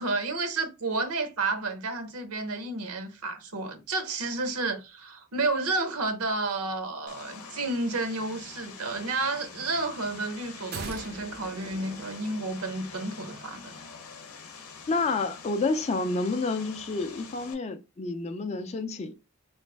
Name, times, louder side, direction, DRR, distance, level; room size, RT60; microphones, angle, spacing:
voice 1, 0.0-13.8, right 3 dB, 85° right, 0.8 m, -31 dB
Vehicle, 7.1-17.5, left 5 dB, 90° left, 0.7 m, -46 dB
sound 1, 10.7-13.1 13.4-13.5, right 4 dB, 45° right, 0.4 m, -42 dB
voice 2, 14.9-19.1, left 3 dB, 30° left, 0.3 m, -29 dB
3.1 x 2.5 x 3.2 m
head